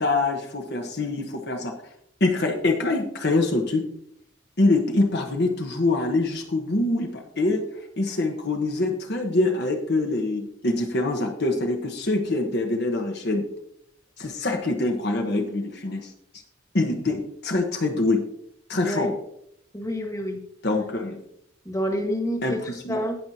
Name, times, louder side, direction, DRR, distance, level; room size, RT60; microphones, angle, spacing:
voice 1, 0.0-1.7 2.2-3.9 4.6-7.6 8.0-13.4 14.2-16.1 16.7-18.2 18.7-19.1 20.6-21.2 22.4-23.0, left 2 dB, 50° left, 2 dB, 1.2 m, -24 dB
voice 2, 18.8-19.1 19.7-20.4 21.6-22.6 22.9-23.2, equal, 15° left, 1 dB, 1.6 m, -28 dB
18.0 x 6.2 x 2.9 m, 0.73 s
head